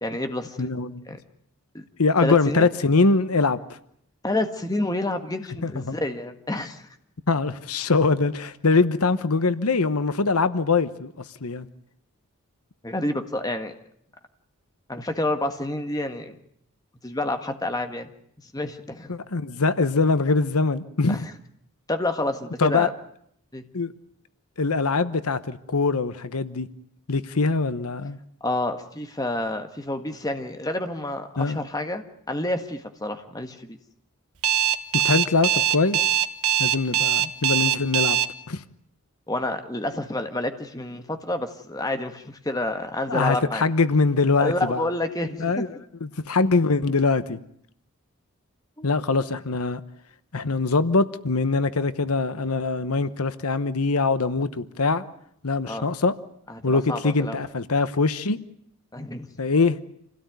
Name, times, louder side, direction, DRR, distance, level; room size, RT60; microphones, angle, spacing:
voice 1, 0.0-1.2 1.7-1.8 2.2-2.7 4.2-6.9 12.8-13.7 14.9-16.4 17.0-19.1 21.1-21.3 21.9-22.9 23.5-23.6 28.4-33.8 39.3-43.6 44.4-45.6 48.8-48.9 55.6-55.9 56.5-57.4 58.9-59.3, left 1 dB, 15° left, 7 dB, 1.6 m, -29 dB
voice 2, 0.6-1.0 2.0-3.6 5.6-6.0 7.3-11.7 19.1-21.3 22.6-22.9 23.7-23.9 24.6-26.7 27.1-28.2 31.4-31.6 34.9-36.0 36.6-38.2 38.5-38.6 43.1-44.9 45.4-45.7 46.0-47.4 48.8-49.8 50.3-55.0 55.4-56.1 56.6-58.4 59.4-59.8, left 3 dB, 80° left, 13 dB, 1.0 m, -23 dB
Alarm, 34.4-38.2, right 10 dB, 90° right, 1.4 m, -21 dB
27.0 x 17.0 x 9.4 m, 0.71 s
head